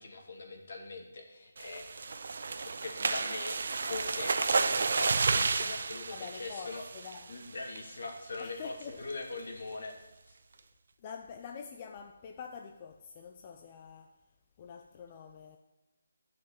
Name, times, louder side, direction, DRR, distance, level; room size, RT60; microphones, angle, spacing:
voice 1, 0.0-2.2 2.5-6.8 7.3-10.0 10.3-10.4, left 3 dB, 60° left, 2.8 m, -42 dB
sound 1, 1.6-7.3 7.8-8.0 8.3-8.4 8.8-9.1, right 4 dB, 55° right, 0.7 m, -31 dB
voice 2, 6.1-7.3 8.4-9.0 10.5-10.7 11.0-14.1 14.6-15.6, left 6 dB, 25° left, 0.6 m, -46 dB
12.0 x 6.0 x 9.1 m
hypercardioid pair, 165°, 0 cm